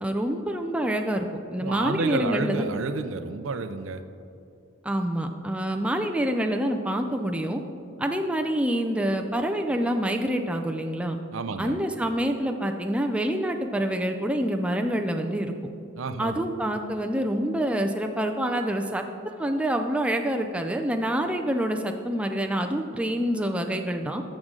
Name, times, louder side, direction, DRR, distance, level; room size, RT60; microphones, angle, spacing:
voice 1, 0.0-2.7 4.8-7.6 8.0-11.2 11.6-15.5 16.2-24.2, right 1 dB, 5° right, 4 dB, 0.4 m, -27 dB
voice 2, 1.6-4.0 11.3-11.8 16.0-16.4, right 4 dB, 65° right, 9 dB, 0.5 m, -30 dB
13.5 x 6.2 x 3.8 m, 2.6 s
head